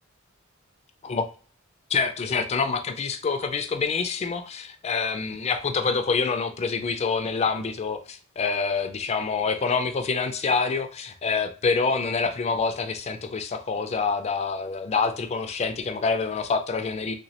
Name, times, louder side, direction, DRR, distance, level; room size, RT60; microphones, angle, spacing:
voice 1, 1.9-17.1, left 4 dB, 30° left, 8 dB, 0.3 m, -26 dB
3.2 x 3.0 x 2.8 m, 0.40 s
head